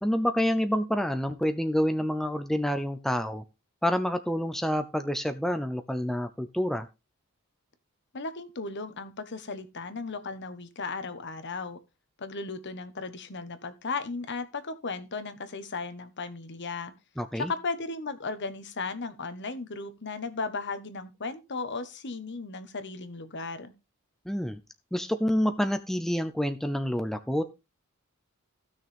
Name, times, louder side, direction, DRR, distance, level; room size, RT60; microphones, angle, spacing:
voice 1, 0.0-3.4 3.8-6.9 17.2-17.5 24.3-24.6 24.9-27.4, equal, ahead, 0.6 m, -28 dB
voice 2, 8.1-11.8 12.2-16.9 17.3-23.7, left 4 dB, 55° left, 1.3 m, -36 dB
15.5 x 6.3 x 3.5 m
head